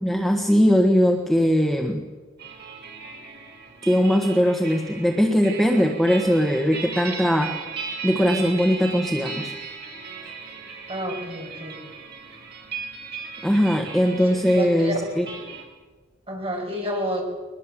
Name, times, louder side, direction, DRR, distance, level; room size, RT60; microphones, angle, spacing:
voice 1, 0.0-2.0 3.8-7.6 8.0-9.5 13.4-15.3, equal, ahead, 3 dB, 1.5 m, -20 dB
sound 1, 2.4-15.6, right 5 dB, 55° right, 4.9 m, -37 dB
voice 2, 10.9-11.9 14.5-14.9 16.3-17.2, equal, 30° right, 1 dB, 6.2 m, -29 dB
22.5 x 20.0 x 7.5 m, 1.4 s
head